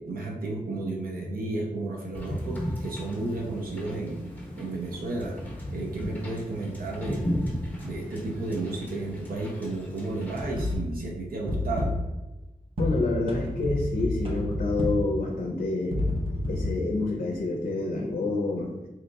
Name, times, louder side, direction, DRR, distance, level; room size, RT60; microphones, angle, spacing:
voice 1, 0.0-4.2 4.6-5.4 5.7-7.3 7.8-12.0, right 2 dB, 75° right, -2 dB, 0.6 m, -32 dB
Wind / Boat Water vehicle, 2.1-10.8, equal, 10° left, 0.9 m, -35 dB
sound 1, 10.6-11.0 11.5-12.2 12.8-15.2 15.9-16.7, left 1 dB, 40° right, 0.6 m, -29 dB
voice 2, 12.8-16.0 16.5-18.7, left 2 dB, 60° left, 0 dB, 0.5 m, -28 dB
2.9 x 2.3 x 3.9 m, 1.0 s
wide cardioid pair, 140°, 15 cm